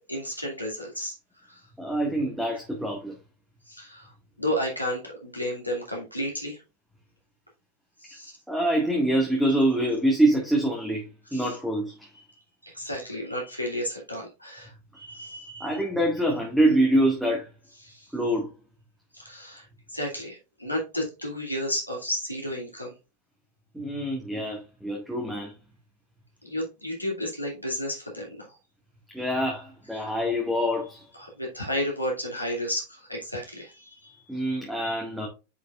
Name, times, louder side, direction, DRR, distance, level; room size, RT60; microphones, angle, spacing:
voice 1, 0.1-1.1 1.5-1.6 3.7-4.1 4.4-6.6 8.0-8.3 11.3-11.5 12.6-15.8 17.8-18.1 19.1-22.9 26.4-28.5 31.1-34.2, equal, 90° left, 2.4 m, -32 dB
voice 2, 1.8-3.2 8.5-12.1 15.6-17.5 18.1-18.5 23.7-25.5 29.1-31.0 34.3-35.3, right 1 dB, 5° right, 1.8 m, -25 dB
9.9 x 5.2 x 2.4 m
figure-of-eight pair, 90°, 0 cm